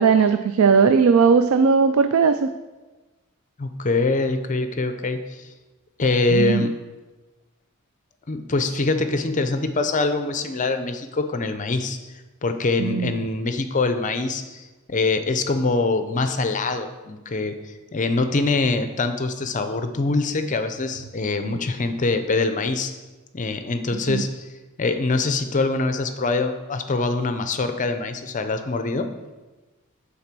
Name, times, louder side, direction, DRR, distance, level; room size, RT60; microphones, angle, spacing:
voice 1, 0.0-2.5 6.3-6.7 12.8-13.1 21.4-21.6 24.1-24.2, right 5 dB, 75° right, 9 dB, 0.4 m, -18 dB
voice 2, 3.6-5.4 6.0-6.7 8.3-12.0 12.4-17.6 17.9-22.9 23.3-24.3 24.8-29.1, left 3 dB, 35° left, 8 dB, 0.6 m, -24 dB
8.6 x 4.1 x 6.1 m, 1.2 s
head